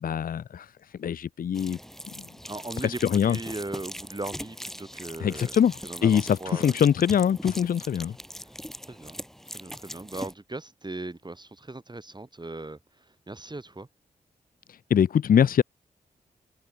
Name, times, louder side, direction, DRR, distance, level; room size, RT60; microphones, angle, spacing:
voice 1, 0.0-1.8 2.1-2.3 2.8-3.4 5.2-8.2 14.7-15.6, left 8 dB, 60° left, 0.6 m, -23 dB
sound 1, 1.5-10.3, equal, ahead, 7.6 m, -41 dB
voice 2, 2.5-5.6 5.8-6.7 8.9-9.2 9.5-13.9, right 2 dB, 25° right, 5.0 m, -38 dB
open air
supercardioid pair, 40°, 16 cm